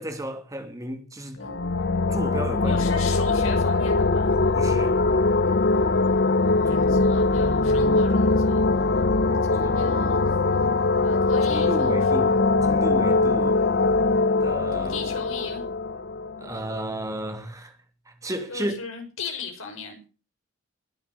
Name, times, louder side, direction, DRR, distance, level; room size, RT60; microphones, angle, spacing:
voice 1, 0.0-1.4 2.1-2.8 4.5-5.0 6.7-6.8 9.6-9.8 11.4-13.6 14.4-14.9 16.4-17.7 18.1-18.8, right 1 dB, 15° right, 2.4 m, -33 dB
sound 1, 1.4-16.9, left 3 dB, 50° left, 0.8 m, -22 dB
voice 2, 2.6-4.4 6.7-8.7 9.5-10.3 11.0-12.4 14.7-15.7 18.5-20.0, left 4 dB, 75° left, 5.7 m, -37 dB
21.0 x 8.4 x 6.7 m
head